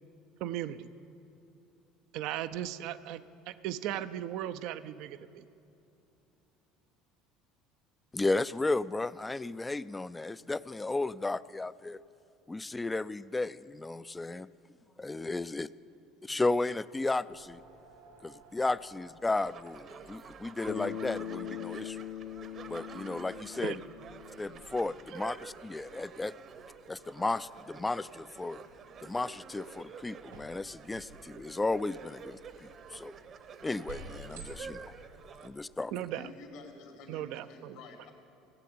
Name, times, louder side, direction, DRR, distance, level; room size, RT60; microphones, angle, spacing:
voice 1, 0.4-0.9 2.1-5.4 23.6-23.8 35.9-36.3 37.1-37.8, right 12 dB, 65° right, 13 dB, 0.5 m, -37 dB
voice 2, 8.1-12.0 12.5-14.5 15.0-15.7 16.2-17.6 18.2-22.0 22.7-23.8 24.4-26.3 26.9-28.6 29.0-33.2 33.6-34.9 35.4-35.9, left 2 dB, 15° left, 17 dB, 0.4 m, -34 dB
sound 1, 17.3-36.2, right 2 dB, 80° right, 2.0 m, -56 dB
sound 2, 19.4-35.5, right 6 dB, 45° right, 0.9 m, -49 dB
Bass guitar, 20.7-25.0, left 10 dB, 55° left, 0.7 m, -41 dB
voice 3, 36.1-38.1, left 3 dB, 75° left, 1 dB, 2.9 m, -50 dB
16.0 x 7.7 x 8.6 m, 2.8 s
hypercardioid pair, 70°, 0 cm